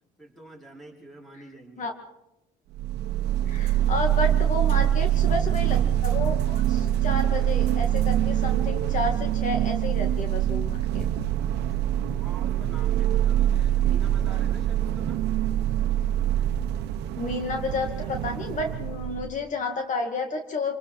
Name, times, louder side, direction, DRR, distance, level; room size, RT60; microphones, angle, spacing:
voice 1, 0.2-1.9 11.7-15.2, right 1 dB, ahead, -1 dB, 4.9 m, -47 dB
sound 1, 2.7-19.3, right 11 dB, 80° right, 1.2 m, -24 dB
voice 2, 3.5-11.0 17.2-20.7, left 3 dB, 50° left, 4 dB, 2.3 m, -31 dB
27.5 x 20.5 x 4.9 m, 0.90 s
cardioid pair, 110°, 17 cm